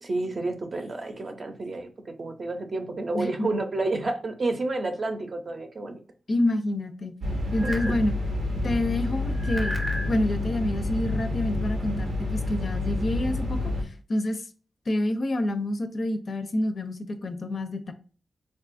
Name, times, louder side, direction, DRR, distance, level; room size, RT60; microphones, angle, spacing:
voice 1, 0.0-6.0, right 2 dB, 50° right, 0.6 m, -30 dB
voice 2, 3.2-3.5 6.3-7.1 7.5-8.2 8.6-9.8 10.0-14.5 14.9-17.9, left 1 dB, 55° left, 0.4 m, -28 dB
sound 1, 7.2-13.8, left 2 dB, 90° right, 0.7 m, -29 dB
sound 2, 7.5-8.0 9.3-10.1, right 1 dB, 5° right, 0.6 m, -33 dB
3.5 x 2.3 x 2.5 m
wide cardioid pair, 90°, 0 cm